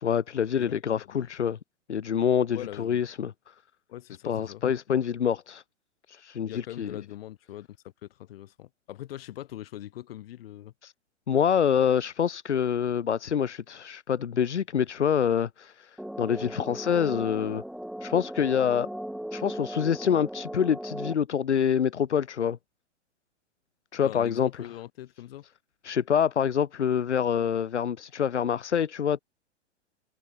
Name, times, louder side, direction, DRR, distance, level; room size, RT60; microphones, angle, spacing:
voice 1, 0.0-1.6 1.9-3.5 4.2-5.6 6.1-7.0 10.8-10.9 11.3-17.6 18.0-18.9 19.3-22.6 23.9-24.7 25.8-29.2, left 8 dB, 65° left, 2.1 m, -26 dB
voice 2, 2.5-3.1 3.9-4.6 6.4-10.7 24.0-25.4, left 13 dB, 50° left, 4.9 m, -42 dB
sound 1, 16.0-21.1, equal, ahead, 0.7 m, -37 dB
figure-of-eight pair, 105°, 37 cm